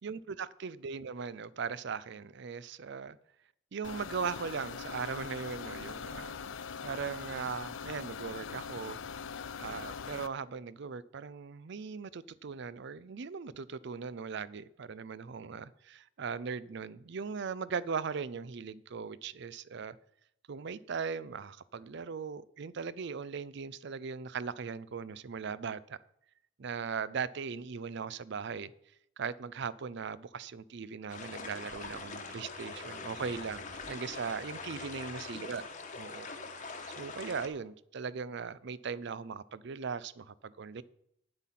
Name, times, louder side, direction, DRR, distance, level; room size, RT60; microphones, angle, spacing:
voice 1, 0.0-3.2 3.7-6.3 6.8-9.0 9.6-20.0 20.5-26.0 26.6-28.7 29.2-35.6 35.9-36.3 36.6-36.7 37.0-40.8, right 5 dB, 60° right, 0.5 m, -39 dB
sound 1, 3.8-10.3, left 6 dB, 70° left, 0.5 m, -42 dB
sound 2, 31.1-37.5, left 4 dB, 40° left, 1.2 m, -43 dB
9.2 x 7.7 x 5.8 m
head